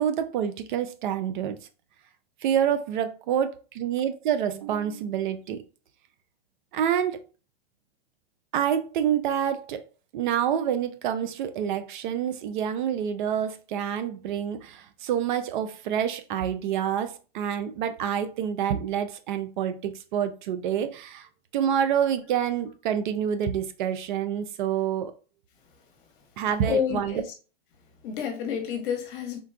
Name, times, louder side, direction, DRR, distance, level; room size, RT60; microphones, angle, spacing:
voice 1, 0.0-1.6 2.4-5.6 6.7-7.2 8.5-9.8 10.1-21.3 21.5-25.1 26.4-27.2, right 9 dB, 50° right, 0.4 m, -27 dB
voice 2, 26.6-27.2 28.0-29.4, left 8 dB, 55° left, 1.0 m, -29 dB
3.8 x 2.2 x 2.3 m
hypercardioid pair, 125°, 32 cm